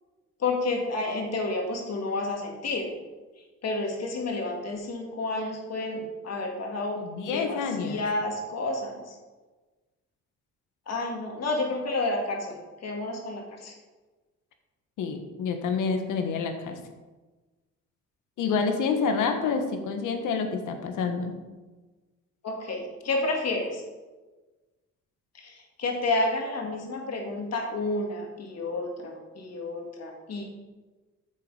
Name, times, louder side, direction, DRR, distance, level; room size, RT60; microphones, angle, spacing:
voice 1, 0.4-2.9 3.6-9.0 10.9-12.5 12.8-13.7 22.4-23.8 25.3-30.4, left 2 dB, 55° left, 1 dB, 2.3 m, -30 dB
voice 2, 7.0-8.0 15.0-16.8 18.4-21.4, left 5 dB, 85° left, 6 dB, 1.4 m, -28 dB
9.5 x 6.9 x 4.9 m, 1.3 s
cardioid pair, 90°, 30 cm